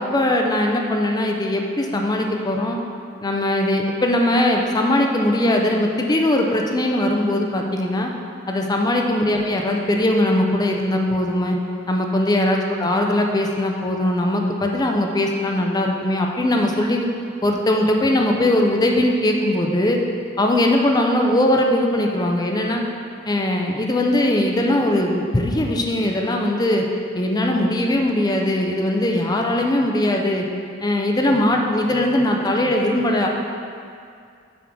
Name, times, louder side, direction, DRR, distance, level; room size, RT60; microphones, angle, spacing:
voice 1, 0.0-2.8 3.2-8.1 8.5-11.6 11.9-17.1 17.4-20.0 20.4-22.8 23.3-26.9 27.1-30.4 30.8-33.3, left 1 dB, 20° left, 1 dB, 0.5 m, -20 dB
7.1 x 3.7 x 6.0 m, 2.3 s
head